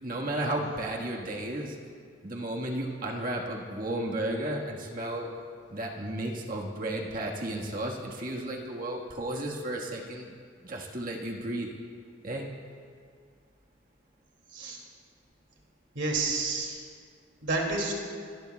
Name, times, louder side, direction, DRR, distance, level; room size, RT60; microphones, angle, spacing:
voice 1, 0.0-1.8 2.2-5.3 5.7-10.3 10.6-11.7 12.2-12.5, right 1 dB, 45° right, -1 dB, 1.6 m, -33 dB
voice 2, 15.9-16.8 17.4-17.9, right 3 dB, 70° right, -1 dB, 2.5 m, -29 dB
26.0 x 19.0 x 2.3 m, 2.1 s
head